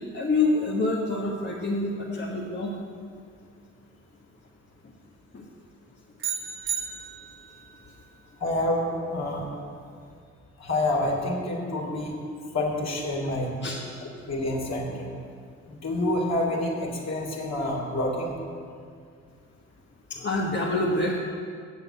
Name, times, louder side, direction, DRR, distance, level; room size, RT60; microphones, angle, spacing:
voice 1, 0.1-2.7 5.3-5.4 13.6-13.8 20.1-21.2, left 2 dB, 30° left, -4 dB, 1.5 m, -26 dB
sound 1, 6.2-7.6, right 7 dB, 35° right, 1.2 m, -33 dB
voice 2, 8.4-9.5 10.6-12.2 12.5-13.5 14.0-15.1 15.7-18.4, left 1 dB, 50° left, -1 dB, 2.8 m, -28 dB
8.4 x 7.2 x 8.0 m, 2.2 s
hypercardioid pair, 50°, 35 cm